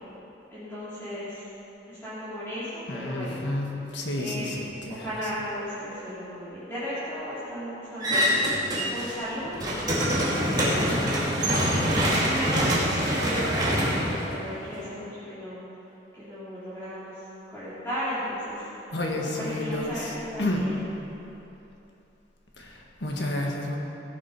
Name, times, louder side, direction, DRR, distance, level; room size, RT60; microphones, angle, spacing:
voice 1, 0.5-1.5 1.9-3.4 4.2-4.6 4.9-10.0 10.5-15.6 16.1-18.9 19.2-20.8, equal, 15° left, -14 dB, 3.0 m, -35 dB
voice 2, 2.9-3.7 3.9-5.1 18.9-20.1 20.4-20.7 22.6-23.8, left 1 dB, 70° left, 0 dB, 1.7 m, -30 dB
sound 1, 8.0-9.1 9.4-14.8, equal, 25° right, 2.3 m, -25 dB
16.0 x 7.4 x 5.5 m, 3.0 s
head